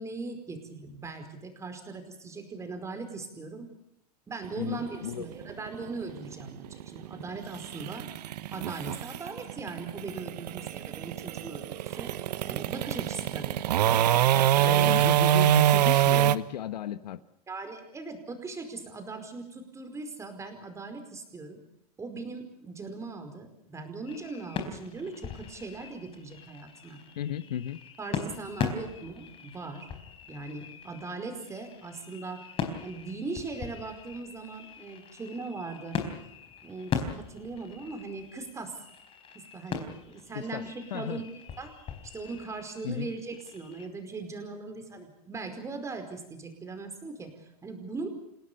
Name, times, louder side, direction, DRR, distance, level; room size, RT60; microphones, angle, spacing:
voice 1, 0.0-3.7 4.3-8.1 8.5-12.1 12.5-13.6 14.5-14.9 17.5-21.6 22.0-27.0 28.0-29.9 30.3-32.4 32.8-36.0 36.6-38.8 39.3-41.3 41.6-41.7 42.0-48.1, right 3 dB, 15° right, 5.0 m, -39 dB
sound 1, 4.4-16.4, right 12 dB, 80° right, 1.1 m, -25 dB
voice 2, 4.6-5.3 14.6-17.2 27.2-27.8 40.3-40.6 40.9-41.2 42.8-43.1, left 11 dB, 85° left, 1.3 m, -34 dB
sound 2, 24.0-43.9, left 6 dB, 25° left, 4.1 m, -40 dB
29.0 x 17.5 x 7.0 m
supercardioid pair, 135°, 21 cm